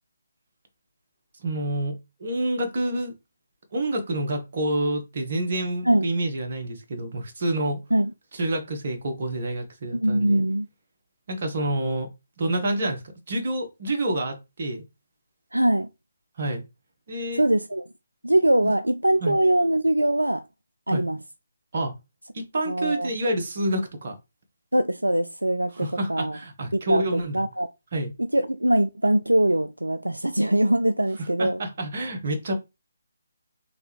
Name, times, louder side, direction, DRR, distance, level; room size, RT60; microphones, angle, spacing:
voice 1, 1.4-3.1 3.7-7.8 8.3-10.4 11.3-12.1 12.4-14.8 16.4-16.6 17.1-17.4 18.6-18.7 19.2-19.4 20.9-21.0 21.7-21.9 22.3-24.2 25.7-27.4 27.9-28.1 31.2-32.5, right 1 dB, 50° right, 1.3 m, -28 dB
voice 2, 9.9-10.7 15.5-15.9 17.3-17.8 18.2-20.5 20.9-21.2 22.7-23.1 24.7-26.4 26.7-27.7 28.3-31.6, right 1 dB, 90° right, 0.3 m, -22 dB
3.8 x 3.5 x 3.1 m
figure-of-eight pair, 145°, 0 cm